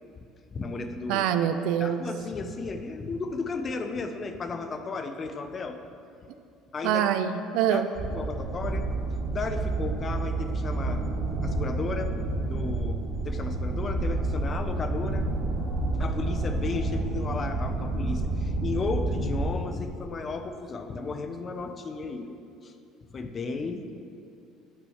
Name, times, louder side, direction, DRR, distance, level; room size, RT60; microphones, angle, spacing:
voice 1, 0.5-1.3 1.8-5.8 6.7-7.1 7.7-7.8 8.1-8.9 9.3-11.1 11.4-12.1 12.4-15.3 15.6-15.7 16.0-22.7 23.1-24.0, left 4 dB, 35° left, 7 dB, 0.9 m, -34 dB
voice 2, 1.1-2.0 6.8-7.9, right 9 dB, 75° right, 10 dB, 0.6 m, -25 dB
sound 1, 7.9-19.5, right 2 dB, 50° right, 1.6 m, -29 dB
9.8 x 6.1 x 7.3 m, 2.6 s
supercardioid pair, 85°, 0 cm